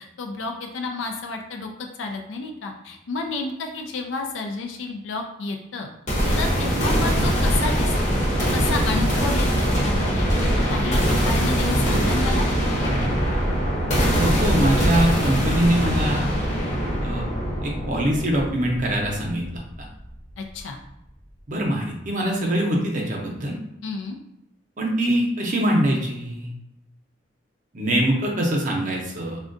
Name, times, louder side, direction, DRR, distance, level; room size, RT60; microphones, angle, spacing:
voice 1, 0.0-5.9 6.4-8.2 8.5-10.3 10.7-12.5 20.4-20.8 23.8-24.2, left 3 dB, 85° left, 3 dB, 0.4 m, -31 dB
sound 1, 6.1-20.0, equal, 40° left, 0.8 m, -22 dB
voice 2, 14.2-16.2 17.0-17.3 17.6-19.9 21.5-23.5 24.8-26.5 27.7-29.4, right 1 dB, 45° right, -1 dB, 0.6 m, -23 dB
3.5 x 2.2 x 2.5 m, 0.85 s
head